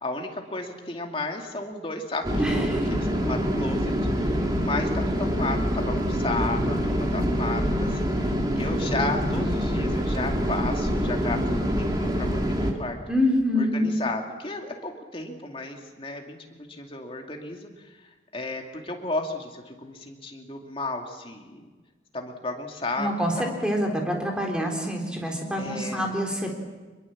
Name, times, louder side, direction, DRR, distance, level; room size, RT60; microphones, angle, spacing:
voice 1, 0.0-13.0 13.6-21.7 22.1-23.1 23.4-23.5 25.6-26.1, left 2 dB, 30° left, 2 dB, 2.5 m, -34 dB
sound 1, 2.2-12.7, equal, 20° right, 2.5 m, -25 dB
voice 2, 2.4-2.9 13.1-13.9 23.0-26.6, equal, 5° right, 1 dB, 3.8 m, -26 dB
25.0 x 22.0 x 7.3 m, 1.3 s
head